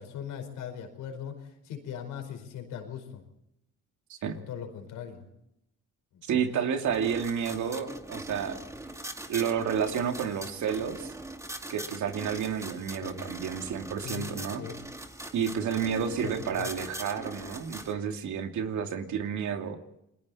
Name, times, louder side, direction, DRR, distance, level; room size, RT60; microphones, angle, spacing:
voice 1, 0.0-3.2 4.2-5.2 6.1-6.6 13.0-13.3 14.0-14.8 16.2-16.7, left 8 dB, 90° left, 6 dB, 5.0 m, -40 dB
voice 2, 6.2-8.6 9.3-11.1 11.7-14.6 15.3-19.8, right 7 dB, 70° right, 5 dB, 2.6 m, -30 dB
sound 1, 6.9-17.9, right 1 dB, 10° right, 2.3 m, -41 dB
29.0 x 21.5 x 4.3 m, 0.83 s
cardioid pair, 90°, 30 cm